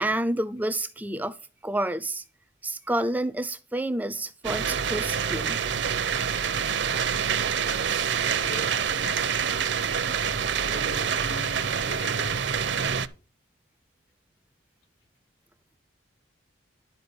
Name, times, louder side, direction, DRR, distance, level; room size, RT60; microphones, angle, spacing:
voice 1, 0.0-1.4 1.6-2.2 2.6-6.1, right 1 dB, 10° right, 0.4 m, -29 dB
sound 1, 4.4-13.1, right 7 dB, 65° right, 0.6 m, -26 dB
voice 2, 8.3-10.1 10.6-12.6, left 1 dB, 85° left, 3.6 m, -41 dB
11.0 x 4.6 x 6.8 m
head